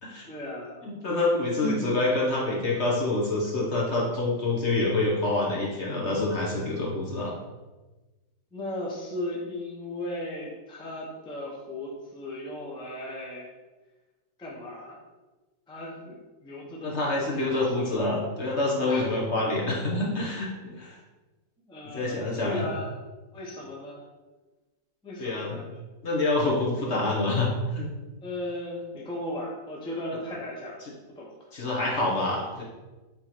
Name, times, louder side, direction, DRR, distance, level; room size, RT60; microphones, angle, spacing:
voice 1, 0.3-0.9 1.6-1.9 8.5-13.5 14.4-15.0 15.7-18.0 18.9-19.5 21.7-23.0 23.3-24.0 25.0-25.6 28.2-30.8 31.1-31.6, left 1 dB, 5° left, -3 dB, 0.7 m, -36 dB
voice 2, 0.8-7.3 16.8-20.9 21.9-22.7 25.2-25.6 26.0-27.5 27.7-27.9 31.5-32.6, left 2 dB, 45° left, -3 dB, 1.1 m, -27 dB
7.9 x 3.1 x 4.2 m, 1.2 s
omnidirectional pair, 1.8 m